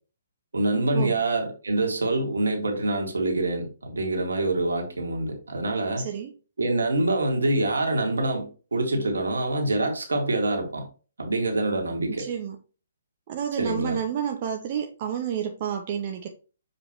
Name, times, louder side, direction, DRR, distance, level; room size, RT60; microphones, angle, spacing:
voice 1, 0.5-6.1 6.6-10.9 11.2-12.3 13.6-14.0, right 2 dB, 65° right, 2.0 m, -25 dB
voice 2, 6.0-6.3 12.2-12.6 13.3-16.3, right 8 dB, 35° right, 0.7 m, -30 dB
7.0 x 4.9 x 2.9 m
figure-of-eight pair, 130°, 0 cm